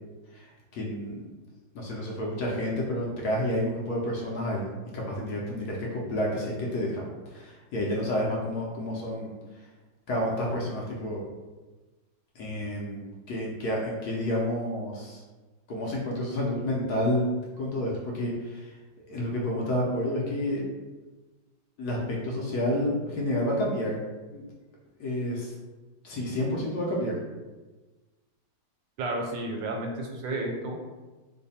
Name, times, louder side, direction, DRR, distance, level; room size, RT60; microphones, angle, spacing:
voice 1, 0.7-1.2 1.7-4.7 4.9-9.3 10.1-11.2 12.3-15.2 15.7-17.2 17.6-18.7 19.1-20.6 21.8-24.0 24.3-24.4 25.0-25.5 26.0-27.2, left 1 dB, 65° left, -3 dB, 1.0 m, -30 dB
voice 2, 29.0-31.0, right 2 dB, 85° right, 2 dB, 1.3 m, -32 dB
3.2 x 2.1 x 4.0 m, 1.2 s
omnidirectional pair, 2.0 m